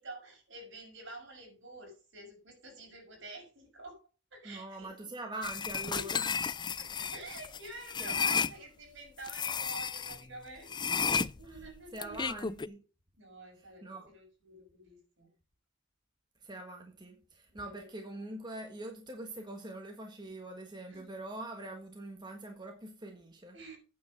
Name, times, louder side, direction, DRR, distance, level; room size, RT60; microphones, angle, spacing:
voice 1, 0.0-4.0 4.3-4.9 5.9-6.1 6.8-12.4 13.2-15.3 17.5-17.9 20.9-21.1 23.5-23.8, right 2 dB, 65° right, 6.3 m, -49 dB
voice 2, 4.4-6.3 8.0-8.5 11.4-11.6 11.9-12.8 13.6-14.1 16.4-23.6, right 2 dB, 20° right, 1.5 m, -44 dB
sound 1, 5.4-8.5 9.2-10.2 10.7-12.7, left 6 dB, 20° left, 0.4 m, -33 dB
9.3 x 7.2 x 6.5 m
head